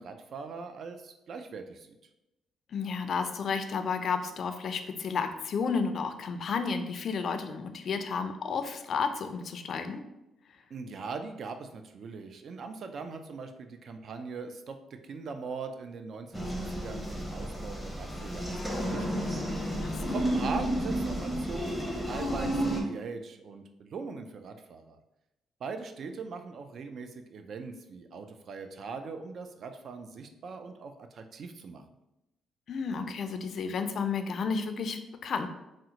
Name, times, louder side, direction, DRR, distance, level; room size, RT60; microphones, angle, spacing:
voice 1, 0.0-1.9 10.7-19.4 20.1-25.0 25.6-31.8, right 4 dB, 60° right, 7 dB, 0.3 m, -41 dB
voice 2, 2.7-10.0 19.8-20.5 32.7-35.5, left 5 dB, 55° left, 8 dB, 0.3 m, -32 dB
sound 1, 16.3-22.8, right 1 dB, 5° right, 0.7 m, -32 dB
3.6 x 2.1 x 2.8 m, 0.92 s
cardioid pair, 90°, 0 cm